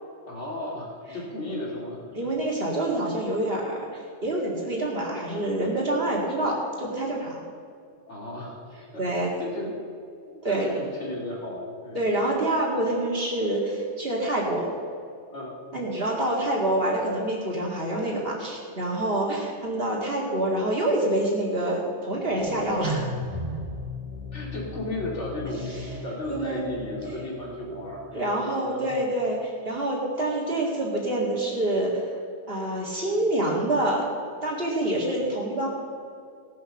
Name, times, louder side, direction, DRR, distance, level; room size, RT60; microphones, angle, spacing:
voice 1, 0.3-2.0 8.1-8.6 8.9-9.7 10.4-12.0 15.3-15.6 24.3-25.7 26.0-28.9, left 1 dB, 65° left, -2 dB, 2.9 m, -34 dB
voice 2, 2.1-7.4 9.0-9.3 10.4-10.7 11.9-14.7 15.7-23.1 26.3-26.6 28.1-32.0 32.5-34.1 34.4-35.7, right 1 dB, 50° right, -3 dB, 2.4 m, -26 dB
sound 1, 22.1-28.5, equal, 25° right, 2.6 m, -36 dB
17.0 x 6.8 x 6.6 m, 2.4 s
omnidirectional pair, 1.3 m